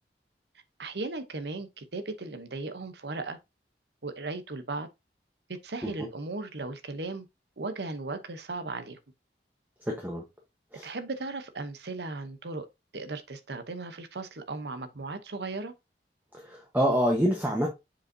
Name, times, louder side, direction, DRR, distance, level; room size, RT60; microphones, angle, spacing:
voice 1, 0.8-3.4 4.0-4.9 5.5-7.3 7.6-9.0 10.8-12.7 12.9-15.7, right 3 dB, 70° right, 0.9 m, -36 dB
voice 2, 9.9-10.2 10.7-10.9 16.3-17.7, equal, 10° right, 1.2 m, -27 dB
7.0 x 5.3 x 2.7 m
head